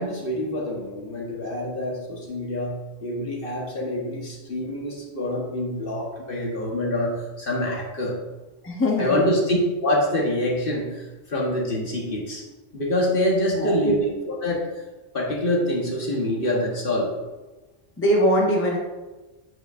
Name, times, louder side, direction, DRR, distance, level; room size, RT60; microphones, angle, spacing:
voice 1, 0.0-2.7 3.0-8.1 9.0-12.4 12.7-14.0 14.3-14.7 15.1-17.1, left 1 dB, 55° left, -2 dB, 1.5 m, -26 dB
voice 2, 8.6-9.2 13.6-14.0 18.0-18.8, equal, 10° left, -2 dB, 0.9 m, -21 dB
8.0 x 7.9 x 2.6 m, 1.2 s
omnidirectional pair, 1.1 m